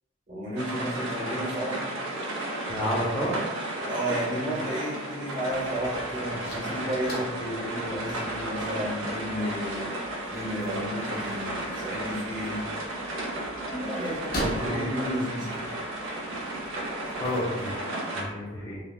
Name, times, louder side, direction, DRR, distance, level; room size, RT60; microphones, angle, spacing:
voice 1, 0.3-1.8 3.8-9.9 10.3-12.6 13.6-15.7, equal, 40° right, -5 dB, 1.0 m, -32 dB
sound 1, 0.6-18.2, right 1 dB, 80° right, 0.5 m, -33 dB
voice 2, 2.7-3.4 14.6-14.8 17.2-18.8, equal, 15° left, -6 dB, 0.4 m, -31 dB
sound 2, 5.5-17.8, equal, 50° left, 0.6 m, -42 dB
3.3 x 2.2 x 2.3 m, 1.1 s
head